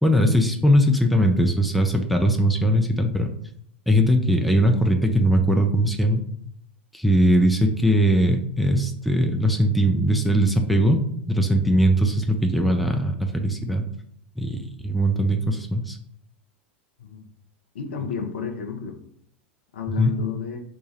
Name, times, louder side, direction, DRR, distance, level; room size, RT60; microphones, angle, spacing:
voice 1, 0.0-3.3 3.9-6.3 6.9-11.0 11.3-13.8 14.4-16.0 20.0-20.1, equal, ahead, 3 dB, 0.5 m, -20 dB
voice 2, 17.7-19.0 19.7-20.6, left 7 dB, 65° left, 4 dB, 0.7 m, -31 dB
3.2 x 2.2 x 4.2 m, 0.69 s
figure-of-eight pair, 90°, 6 cm